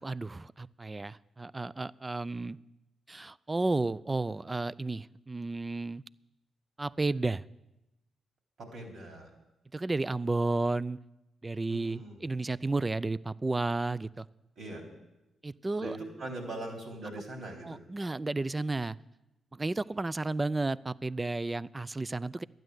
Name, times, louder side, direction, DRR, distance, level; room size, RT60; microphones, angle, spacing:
voice 1, 0.0-2.6 3.1-6.0 6.8-7.4 9.7-11.0 11.4-14.3 15.4-16.0 17.6-19.0 19.5-22.4, right 2 dB, 30° right, 20 dB, 0.4 m, -32 dB
voice 2, 8.6-9.3 11.7-12.2 14.6-14.8 15.8-17.8, right 2 dB, 65° right, 1 dB, 3.7 m, -41 dB
12.5 x 9.1 x 7.9 m, 0.95 s
hypercardioid pair, 45°, 0 cm